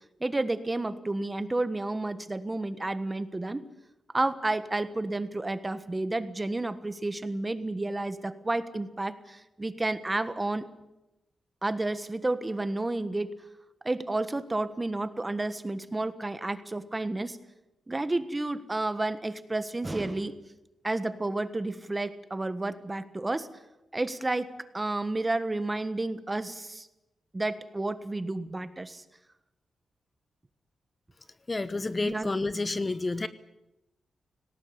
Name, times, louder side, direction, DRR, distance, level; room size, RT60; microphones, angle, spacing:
voice 1, 0.2-3.6 4.1-10.7 11.6-13.3 13.8-17.4 17.9-20.3 20.8-23.5 23.9-26.9 27.3-29.0 32.0-32.3, right 2 dB, 20° right, 12 dB, 1.4 m, -31 dB
voice 2, 31.5-33.3, left 3 dB, 25° left, 14 dB, 0.9 m, -30 dB
18.5 x 18.0 x 9.6 m, 0.94 s
cardioid pair, 100°, 0 cm